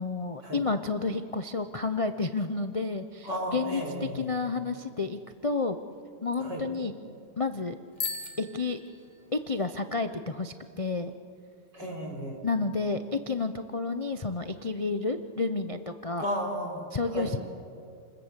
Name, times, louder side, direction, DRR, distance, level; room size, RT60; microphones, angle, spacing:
voice 1, 0.0-5.8 6.2-6.9 7.4-7.8 8.4-8.8 9.3-11.1 12.4-16.2 16.9-17.4, left 3 dB, 40° left, 8 dB, 0.4 m, -30 dB
voice 2, 3.2-4.3 6.4-6.6 11.7-12.4 16.2-17.3, equal, 80° right, 0 dB, 4.9 m, -34 dB
Bicycle bell, 7.9-9.7, left 4 dB, 25° left, 2.0 m, -38 dB
29.0 x 21.0 x 8.2 m, 2.4 s
omnidirectional pair, 1.9 m